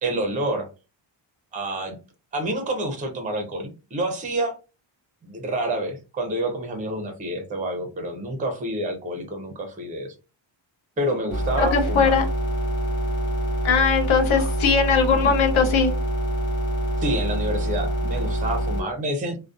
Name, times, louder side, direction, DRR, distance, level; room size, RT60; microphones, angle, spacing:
voice 1, 0.0-0.7 1.5-2.0 2.3-4.6 5.2-10.1 11.0-12.2 14.3-14.5 17.0-19.4, right 1 dB, 20° right, 0.4 m, -28 dB
sound 1, 11.3-18.8, right 1 dB, 25° left, 1.1 m, -25 dB
voice 2, 11.6-12.2 13.6-15.9, left 6 dB, 80° left, 0.8 m, -20 dB
2.5 x 2.1 x 2.3 m
wide cardioid pair, 155°, 48 cm